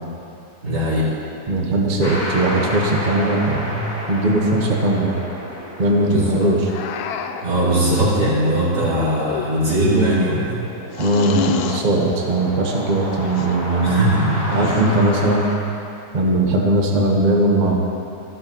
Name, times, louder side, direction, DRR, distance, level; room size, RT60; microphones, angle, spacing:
voice 1, 0.6-1.1 6.0-6.5 7.4-10.6 13.8-14.6, right 1 dB, 85° right, -10 dB, 3.8 m, -20 dB
voice 2, 1.5-5.1 5.8-6.7 11.0-14.0 14.5-15.5 16.1-17.8, right 1 dB, 30° right, -1 dB, 1.1 m, -19 dB
sound 1, 2.0-15.5, equal, 15° left, 2.3 m, -32 dB
sound 2, 6.7-7.6 9.1-9.8 10.9-11.9 13.2-13.6 14.5-15.2, left 9 dB, 75° left, 1.1 m, -29 dB
14.5 x 12.0 x 3.0 m, 2.7 s
omnidirectional pair, 1.8 m